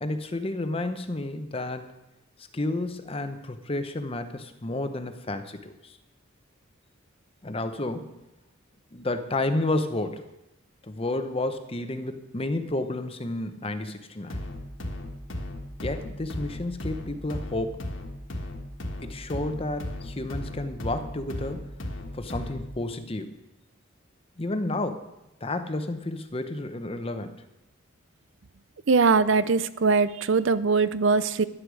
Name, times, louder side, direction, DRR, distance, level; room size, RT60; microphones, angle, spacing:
voice 1, 0.0-1.9 2.5-6.0 7.4-8.1 8.9-10.2 10.8-14.4 15.8-17.8 19.0-21.6 22.1-23.3 24.4-25.1 25.4-27.4, left 2 dB, 25° left, 9 dB, 0.8 m, -31 dB
sound 1, 14.3-22.8, left 1 dB, 65° left, 1.4 m, -36 dB
voice 2, 28.9-31.4, right 4 dB, 65° right, 15 dB, 0.5 m, -21 dB
11.0 x 8.2 x 6.3 m, 0.93 s
head